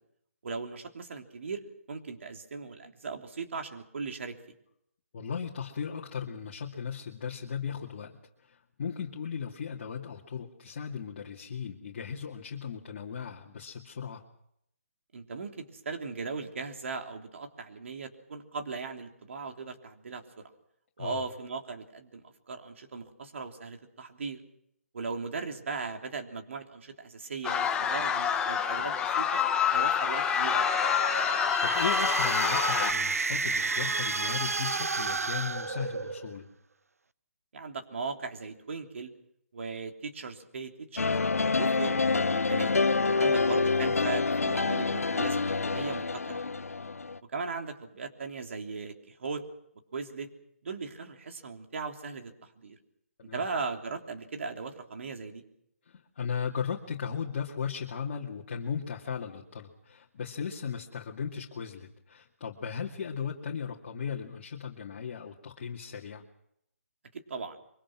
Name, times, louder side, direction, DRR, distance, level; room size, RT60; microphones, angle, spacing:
voice 1, 0.4-4.4 15.1-20.4 21.0-24.4 24.9-29.3 29.7-30.7 37.5-39.1 39.5-41.2 41.5-42.8 43.1-46.6 47.3-49.5 49.9-50.3 50.6-52.8 53.3-55.4 67.1-67.6, right 4 dB, 60° right, 4 dB, 3.3 m, -38 dB
voice 2, 5.1-14.2 21.0-21.2 31.6-36.5 53.2-53.4 55.9-66.2, left 7 dB, 45° left, 0 dB, 2.4 m, -37 dB
sound 1, 27.4-32.9, left 7 dB, 10° left, 1.2 m, -27 dB
sound 2, 30.3-36.4, right 4 dB, 85° right, 0.8 m, -31 dB
sound 3, 41.0-47.2, left 4 dB, 85° left, 1.0 m, -27 dB
24.5 x 23.5 x 6.1 m, 0.74 s
hypercardioid pair, 155°, 8 cm